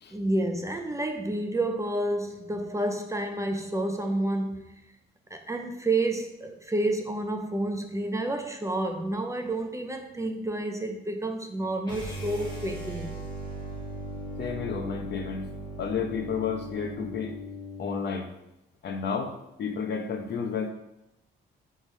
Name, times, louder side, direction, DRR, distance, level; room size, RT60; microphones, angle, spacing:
voice 1, 0.1-4.6 5.3-13.1, right 1 dB, 15° right, 0.7 m, -29 dB
sound 1, 11.8-18.0, right 1 dB, 20° left, 2.3 m, -38 dB
voice 2, 14.4-15.4 15.8-17.3 17.8-18.3 18.8-19.3 19.6-20.7, left 6 dB, 60° left, 0.9 m, -31 dB
4.8 x 3.5 x 5.5 m
cardioid pair, 90°, 20 cm